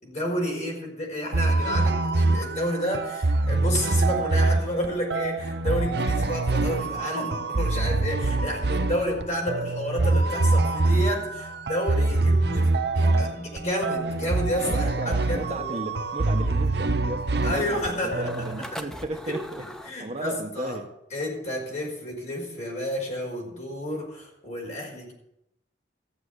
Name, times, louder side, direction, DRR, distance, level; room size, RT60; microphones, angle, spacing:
voice 1, 0.0-15.8 17.4-18.3 19.3-20.8 21.1-25.1, equal, 40° left, 5.3 m, -31 dB
sound 1, 1.3-18.6, right 2 dB, 60° right, 0.8 m, -24 dB
voice 2, 14.7-19.6 20.0-20.9, right 1 dB, 35° right, 1.0 m, -35 dB
sound 2, 14.9-19.9, equal, 5° left, 0.7 m, -41 dB
15.0 x 7.5 x 8.2 m
head